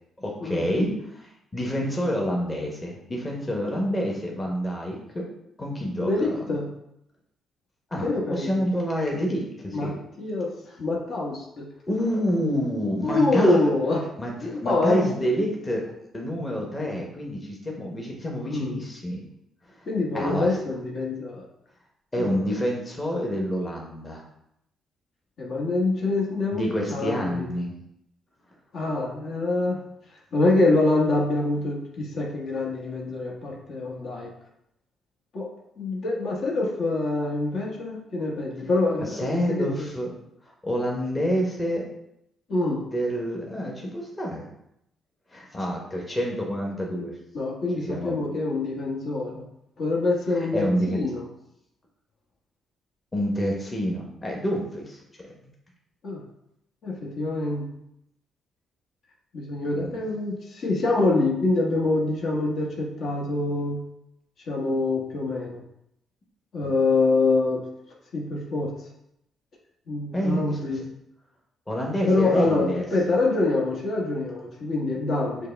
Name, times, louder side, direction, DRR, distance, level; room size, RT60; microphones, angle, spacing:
voice 1, 0.2-5.3 5.6-6.1 7.9-10.0 11.9-13.7 14.2-15.9 16.1-19.2 19.8-19.9 20.1-20.6 22.1-24.2 26.5-27.7 39.1-40.1 40.6-41.9 42.9-44.5 45.3-47.2 47.8-48.2 50.3-51.1 53.1-55.0 59.8-60.0 66.6-66.7 70.1-70.8 71.7-72.8, equal, 20° left, -1 dB, 0.9 m, -28 dB
voice 2, 6.0-6.7 8.0-8.5 9.7-9.9 10.2-11.7 13.0-14.0 14.4-15.2 18.5-18.8 19.9-21.4 22.2-22.5 25.4-27.5 28.7-29.8 30.3-34.3 35.3-35.4 35.8-39.9 42.5-42.8 47.3-49.4 49.8-51.2 56.0-56.2 56.8-57.6 59.3-63.8 64.5-65.6 66.5-67.6 68.1-68.7 69.9-70.8 72.1-75.5, left 2 dB, 60° left, -3 dB, 1.1 m, -25 dB
6.4 x 2.2 x 3.3 m, 0.79 s
cardioid pair, 90°, 0 cm